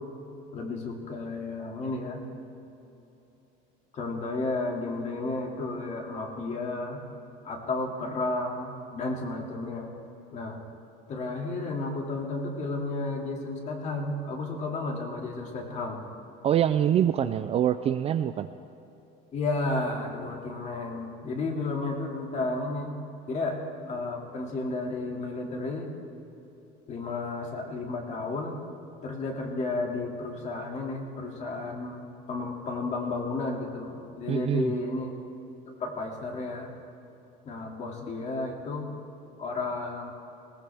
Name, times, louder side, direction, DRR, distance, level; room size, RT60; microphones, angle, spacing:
voice 1, 0.5-2.2 3.9-7.0 7.4-9.9 10.3-10.6 11.1-16.0 17.2-17.3 19.3-22.9 23.3-23.6 23.9-25.9 26.9-28.6 29.0-35.2 35.7-36.7 37.4-38.9 39.4-40.1, left 3 dB, 35° left, 1 dB, 2.4 m, -32 dB
voice 2, 16.4-18.5 34.3-34.7, right 10 dB, 30° right, 10 dB, 0.3 m, -25 dB
20.0 x 18.5 x 3.5 m, 3.0 s
cardioid pair, 155°, 21 cm